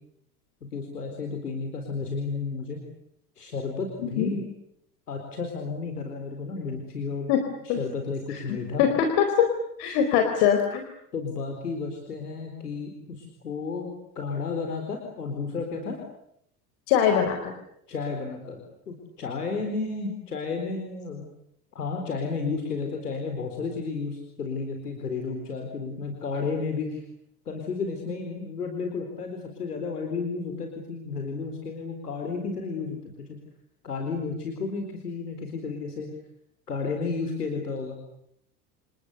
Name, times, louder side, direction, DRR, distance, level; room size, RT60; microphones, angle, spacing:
voice 1, 0.7-2.8 3.4-4.4 5.1-7.3 7.6-8.9 11.1-16.0 17.9-21.2 21.7-27.0 27.5-33.0 33.3-33.4 33.8-36.1 36.7-38.0, left 4 dB, 85° left, 3 dB, 4.3 m, -32 dB
voice 2, 8.8-9.1 9.8-10.8 16.9-17.5, left 8 dB, 60° left, 5 dB, 4.5 m, -22 dB
29.0 x 29.0 x 6.9 m, 0.74 s
figure-of-eight pair, 70°, 45 cm